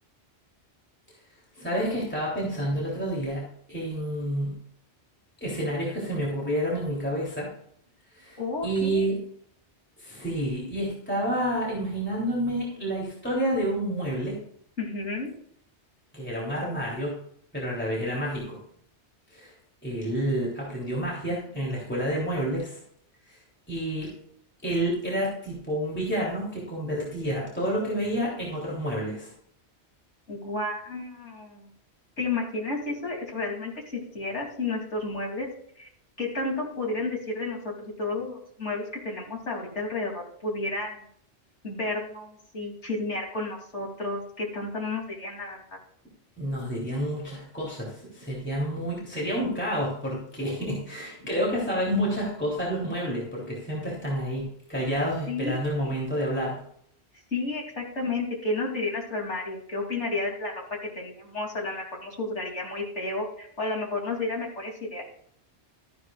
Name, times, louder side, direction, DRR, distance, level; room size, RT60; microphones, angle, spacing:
voice 1, 1.5-4.6 5.4-7.5 8.1-9.2 10.0-14.4 16.1-17.2 17.5-18.6 19.3-19.5 19.8-22.8 23.3-23.4 23.7-24.1 24.6-29.3 46.4-56.6, equal, 10° left, -5 dB, 3.3 m, -29 dB
voice 2, 8.4-9.1 14.8-15.3 30.3-31.7 32.2-33.7 34.1-35.5 35.8-35.9 36.2-41.0 41.6-45.8 55.3-55.9 57.3-60.5 60.8-65.0, left 2 dB, 85° left, -2 dB, 3.6 m, -32 dB
14.0 x 9.8 x 2.5 m, 0.65 s
omnidirectional pair, 1.2 m